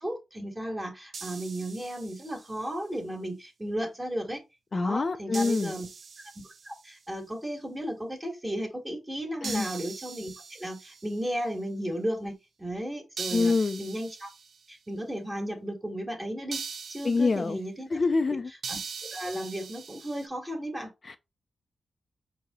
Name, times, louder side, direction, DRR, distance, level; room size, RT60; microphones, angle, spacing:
voice 1, 0.0-4.4 4.7-5.9 6.2-6.3 6.6-14.3 14.7-16.6 16.9-17.9 18.3-18.4 18.7-20.9, equal, 15° right, 1.5 m, -34 dB
sound 1, 1.1-2.6 5.3-6.9 9.4-11.3 13.2-14.6 16.5-17.5 18.6-20.3, right 5 dB, 65° right, 0.5 m, -41 dB
voice 2, 4.7-5.7 9.4-9.7 13.3-13.8 17.0-17.6 17.9-18.5 21.1-21.2, left 4 dB, 40° left, 0.4 m, -26 dB
4.8 x 2.8 x 3.5 m
wide cardioid pair, 95°, 0 cm